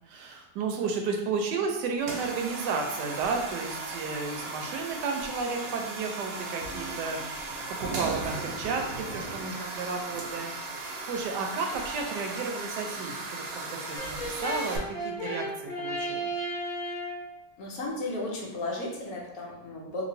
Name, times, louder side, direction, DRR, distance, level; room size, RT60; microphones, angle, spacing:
voice 1, 0.1-16.3, right 4 dB, 90° right, 3 dB, 1.2 m, -33 dB
sound 1, 2.0-14.8, right 3 dB, 70° right, 1.0 m, -37 dB
Brass instrument, 14.0-17.3, equal, 45° left, 0.5 m, -34 dB
voice 2, 17.6-20.0, left 2 dB, 65° left, -2 dB, 1.1 m, -34 dB
3.1 x 2.9 x 2.6 m, 0.95 s
omnidirectional pair, 1.8 m